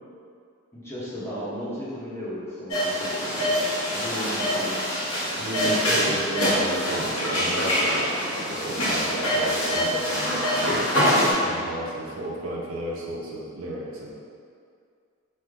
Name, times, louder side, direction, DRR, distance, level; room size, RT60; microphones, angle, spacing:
voice 1, 0.7-3.6 3.9-4.9, equal, 15° left, -9 dB, 0.7 m, -35 dB
sound 1, 2.7-11.3, equal, 85° left, 0.8 m, -24 dB
voice 2, 5.4-10.8 11.2-14.1, right 1 dB, 80° right, -4 dB, 0.6 m, -33 dB
3.2 x 2.0 x 3.5 m, 2.3 s
head